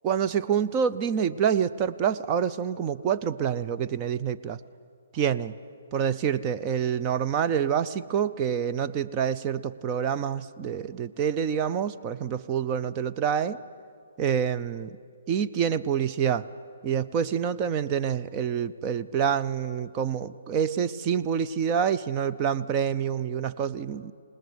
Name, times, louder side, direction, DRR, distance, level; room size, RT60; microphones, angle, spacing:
voice 1, 0.0-4.6 5.1-5.5 5.9-13.6 14.2-14.9 15.3-16.5 16.8-24.1, right 8 dB, 20° right, 11 dB, 0.5 m, -27 dB
27.5 x 19.0 x 9.5 m, 2.3 s
hypercardioid pair, 165°, 0 cm